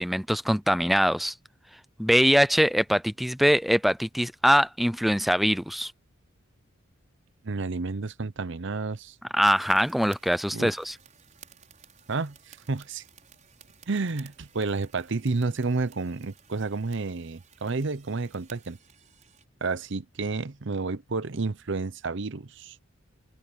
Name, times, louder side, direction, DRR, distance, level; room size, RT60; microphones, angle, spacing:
voice 1, 0.0-1.3 2.0-5.9 9.3-10.9, equal, ahead, 0.4 m, -23 dB
voice 2, 7.4-9.2 10.5-10.7 12.1-13.0 13.9-18.8 19.6-22.8, right 3 dB, 60° right, 0.8 m, -30 dB
sound 1, 9.4-19.5, right 8 dB, 35° right, 6.4 m, -56 dB
open air
head